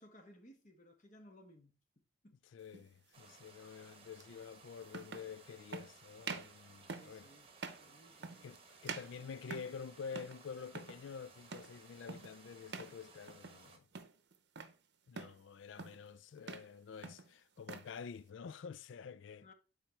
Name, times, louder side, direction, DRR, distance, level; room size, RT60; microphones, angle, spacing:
voice 1, 0.0-1.8 2.2-2.4 6.9-8.5 19.4-19.5, equal, 40° left, 1.4 m, -60 dB
voice 2, 2.5-7.3 8.4-13.9 15.1-19.5, left 6 dB, 75° left, 0.4 m, -49 dB
sound 1, 2.7-2.9 4.2-4.3 4.9-5.3 5.7-5.9 6.2-6.6 6.9-7.2 7.6-7.9 8.2-8.6 8.9-9.8 10.1-10.4 10.7-11.0 11.5-11.8 12.1-12.4 12.7-13.0 13.3-13.6 13.9-14.8 15.2-15.4 15.8-16.1 16.4-16.7 17.0-17.9, right 4 dB, 60° right, 0.7 m, -46 dB
sound 2, 3.1-13.8, right 4 dB, 30° right, 1.0 m, -60 dB
8.7 x 4.4 x 3.3 m
head